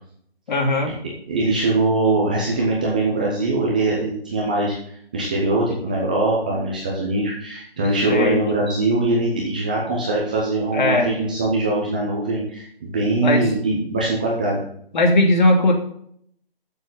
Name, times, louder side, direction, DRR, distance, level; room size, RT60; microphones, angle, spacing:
voice 1, 0.5-0.9 7.8-8.4 10.7-11.1 13.2-13.5 14.9-15.7, left 2 dB, 50° left, 3 dB, 2.7 m, -18 dB
voice 2, 1.3-4.7 5.1-14.6, right 2 dB, 10° right, -4 dB, 0.5 m, -22 dB
13.0 x 6.9 x 4.1 m, 0.65 s
hypercardioid pair, 160°, 30 cm